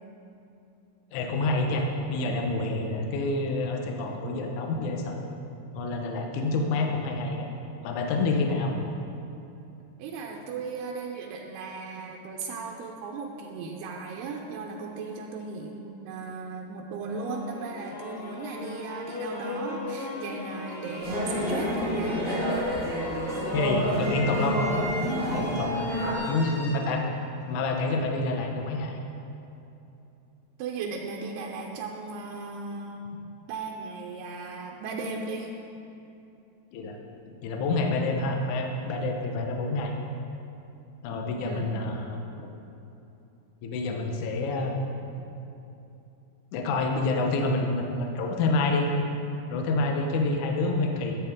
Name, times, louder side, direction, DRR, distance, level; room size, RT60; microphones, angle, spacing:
voice 1, 1.1-5.2 5.7-7.5 7.8-8.8 23.5-24.7 25.3-25.9 26.3-27.1 27.5-28.9 36.7-37.0 37.4-39.9 41.0-42.2 43.6-44.8 46.5-48.9 49.5-51.2, left 2 dB, 90° left, 2 dB, 1.7 m, -28 dB
voice 2, 10.0-22.2 22.7-22.9 26.0-26.1 30.6-33.0 33.5-35.5 41.5-41.7, right 4 dB, 80° right, 1 dB, 2.7 m, -36 dB
sound 1, 17.1-28.1, left 1 dB, 55° left, 0.9 m, -37 dB
sound 2, 21.0-26.2, equal, 30° right, 1.7 m, -29 dB
13.5 x 8.5 x 3.6 m, 2.8 s
omnidirectional pair, 4.7 m